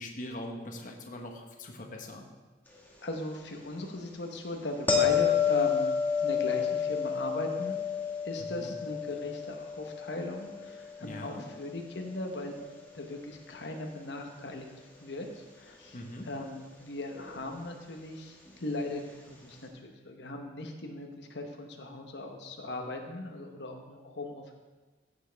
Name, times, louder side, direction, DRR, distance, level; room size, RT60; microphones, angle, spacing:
voice 1, 0.0-2.3 8.4-8.7 11.0-11.4 15.9-16.3, left 1 dB, 50° left, 2 dB, 1.1 m, -42 dB
voice 2, 3.0-7.8 8.2-14.7 15.0-24.5, left 2 dB, 80° left, 3 dB, 1.0 m, -38 dB
sound 1, 4.9-11.9 17.1-17.3, left 7 dB, 10° left, 1.5 m, -30 dB
14.5 x 7.2 x 3.4 m, 1.2 s
head